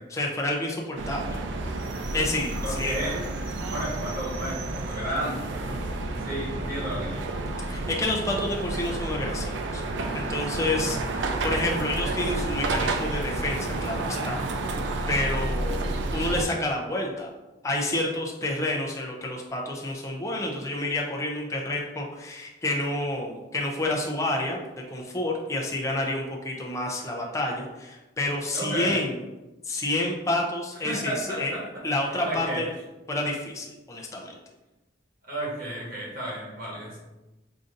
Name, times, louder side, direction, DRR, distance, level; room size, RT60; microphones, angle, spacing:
voice 1, 0.1-1.4 2.1-3.1 7.6-9.8 10.1-14.4 15.1-15.8 16.1-17.3 17.6-24.6 24.9-29.2 29.6-31.5 31.8-32.7 33.1-34.3, left 1 dB, 15° left, -1 dB, 0.4 m, -29 dB
sound 1, 1.0-16.4, right 2 dB, 80° right, 0.4 m, -30 dB
voice 2, 2.6-3.2 3.6-5.8 6.2-7.4 28.5-29.0 30.8-31.6 32.2-32.6 35.3-37.0, right 1 dB, 50° right, -5 dB, 1.4 m, -33 dB
4.9 x 2.6 x 2.5 m, 1.1 s
head